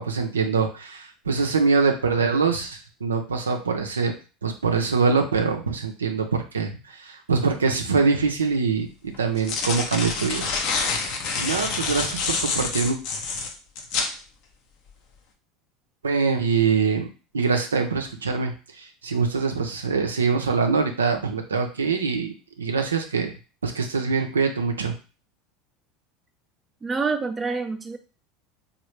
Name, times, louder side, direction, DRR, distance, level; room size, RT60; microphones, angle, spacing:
voice 1, 0.0-4.1 4.4-10.5 11.4-13.0 16.0-17.1 17.3-22.3 22.6-23.3 23.6-24.9, right 5 dB, 85° right, 4 dB, 0.4 m, -24 dB
sound 1, 8.1-8.2 9.1-14.1, left 4 dB, 55° left, 0.6 m, -27 dB
voice 2, 26.8-28.0, right 4 dB, 20° right, 8 dB, 0.5 m, -27 dB
3.1 x 2.3 x 3.0 m, 0.34 s
hypercardioid pair, 75°, 0 cm